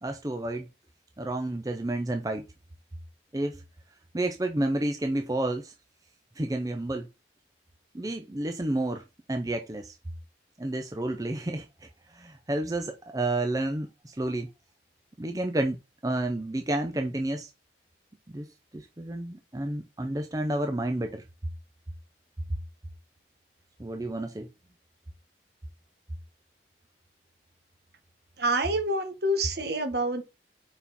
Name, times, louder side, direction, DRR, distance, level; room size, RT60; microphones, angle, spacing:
voice 1, 0.0-0.7 1.2-2.4 3.3-3.6 4.1-5.7 6.4-7.1 7.9-9.0 9.3-9.9 10.6-11.9 12.1-14.5 15.2-15.8 16.0-17.5 18.3-18.5 18.7-21.2 23.8-24.5, right 1 dB, 20° right, 0.5 m, -30 dB
voice 2, 28.4-30.2, right 1 dB, 60° right, 1.3 m, -27 dB
5.2 x 4.8 x 4.2 m
head